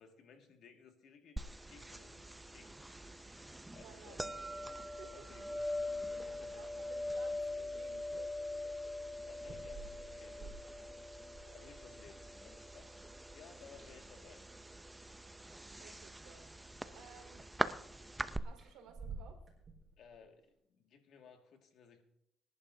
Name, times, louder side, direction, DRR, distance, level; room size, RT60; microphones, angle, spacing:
voice 1, 0.0-2.8 3.1-4.2 5.1-6.6 9.3-10.7 11.5-12.9 13.2-14.4 16.7-17.4 20.0-22.0, left 6 dB, 65° left, 4 dB, 1.9 m, -59 dB
sound 1, 1.4-18.4, equal, 10° right, 0.6 m, -43 dB
voice 2, 3.8-4.3 5.0-5.1 6.6-8.6 11.4-11.6 15.8-16.5 16.9-17.4 18.4-19.4, right 6 dB, 90° right, 3 dB, 2.5 m, -57 dB
sound 2, 9.4-11.7 13.4-14.4 15.5-15.6 16.1-16.9 18.4-20.2, right 4 dB, 30° right, 3.9 m, -52 dB
24.0 x 10.5 x 2.7 m, 0.77 s
cardioid pair, 110°, 0 cm